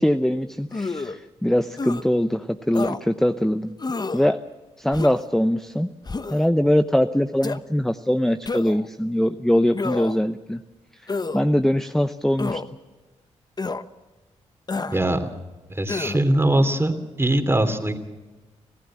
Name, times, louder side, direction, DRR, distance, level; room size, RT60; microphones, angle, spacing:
voice 1, 0.0-3.7 4.1-4.4 4.8-5.9 6.3-10.6 11.3-12.6, equal, 5° left, 10 dB, 0.8 m, -22 dB
sound 1, 0.7-1.2 1.8-2.0 2.7-3.0 3.8-4.3 4.9-5.3 6.0-6.5 7.4-7.6 8.5-8.9 9.7-10.2 11.1-11.4 12.4-12.7 13.6-13.8 14.7-15.0 15.9-16.2, left 3 dB, 30° left, 1.0 m, -29 dB
voice 2, 14.9-15.3 15.7-18.0, right 1 dB, 20° right, 7 dB, 2.9 m, -21 dB
26.0 x 15.0 x 7.5 m, 1.2 s
supercardioid pair, 50°, 13 cm